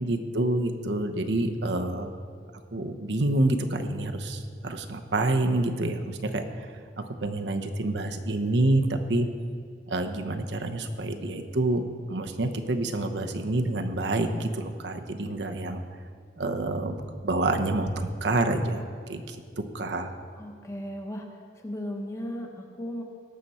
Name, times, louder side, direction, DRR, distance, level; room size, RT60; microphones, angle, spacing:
voice 1, 0.0-2.1 2.7-6.4 7.0-9.3 9.9-15.8 16.4-19.4 19.7-20.1, right 2 dB, 90° right, 5 dB, 0.9 m, -27 dB
voice 2, 20.4-21.3 21.6-23.0, equal, 15° left, 2 dB, 1.0 m, -36 dB
18.0 x 6.7 x 4.3 m, 2.1 s
head